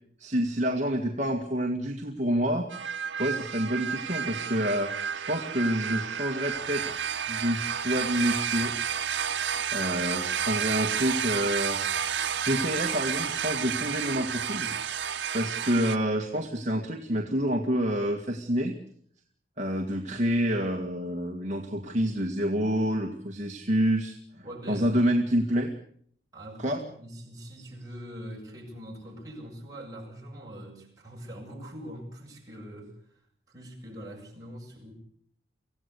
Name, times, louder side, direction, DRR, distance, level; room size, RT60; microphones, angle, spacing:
voice 1, 0.2-7.0 7.3-8.7 9.3-11.8 12.4-15.0 15.3-18.8 19.6-24.2 24.7-25.7 26.6-26.8, equal, 40° right, 2 dB, 2.0 m, -28 dB
sound 1, 2.7-16.0, right 8 dB, 85° right, 1.1 m, -31 dB
voice 2, 24.3-25.0 26.3-34.9, equal, 20° right, -2 dB, 7.8 m, -43 dB
25.5 x 16.0 x 8.4 m, 0.65 s
head